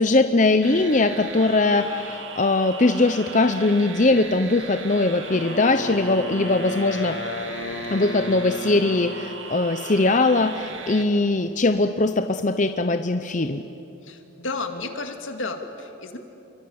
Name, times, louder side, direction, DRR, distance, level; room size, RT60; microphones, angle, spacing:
voice 1, 0.0-7.2 7.9-13.6, left 2 dB, 40° left, 8 dB, 0.7 m, -21 dB
sound 1, 0.6-11.0, right 4 dB, 70° right, 2.3 m, -38 dB
Wind instrument woodwind instrument, 5.3-9.4, left 1 dB, 55° left, 1.6 m, -33 dB
voice 2, 14.0-16.2, left 3 dB, 75° left, 5 dB, 2.4 m, -32 dB
27.5 x 24.0 x 8.8 m, 2.9 s
head